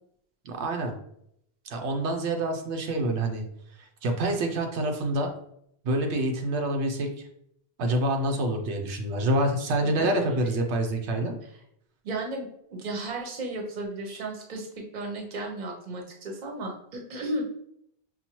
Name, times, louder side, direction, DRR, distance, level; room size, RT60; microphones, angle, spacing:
voice 1, 0.4-0.9 1.7-3.4 4.0-5.3 5.8-7.1 7.8-11.3, right 1 dB, 90° right, 4 dB, 1.0 m, -27 dB
voice 2, 10.0-10.4 12.0-12.5 12.7-17.4, right 2 dB, 45° right, 1 dB, 0.9 m, -34 dB
5.6 x 2.2 x 2.9 m, 0.73 s
omnidirectional pair, 1.1 m